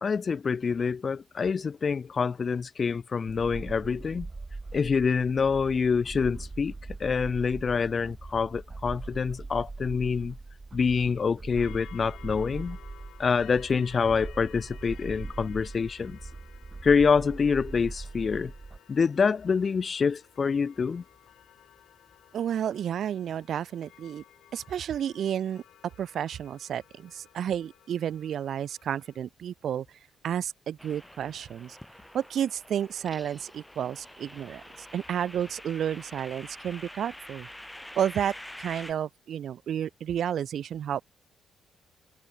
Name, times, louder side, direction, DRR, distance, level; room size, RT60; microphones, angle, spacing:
voice 1, 0.0-4.3 4.7-6.7 7.0-10.4 10.7-12.8 13.2-16.2 16.8-18.5 18.9-21.0, left 5 dB, 40° left, 0.7 m, -26 dB
sound 1, 3.3-18.8, right 3 dB, 20° right, 4.0 m, -41 dB
sound 2, 11.6-29.2, left 12 dB, 80° left, 3.1 m, -55 dB
voice 2, 22.3-24.2 24.5-25.6 26.0-29.9 30.2-31.8 32.1-37.5 38.0-41.0, right 9 dB, 65° right, 0.6 m, -31 dB
sound 3, 30.8-38.9, left 1 dB, 5° left, 1.7 m, -46 dB
open air
cardioid pair, 110°, 0 cm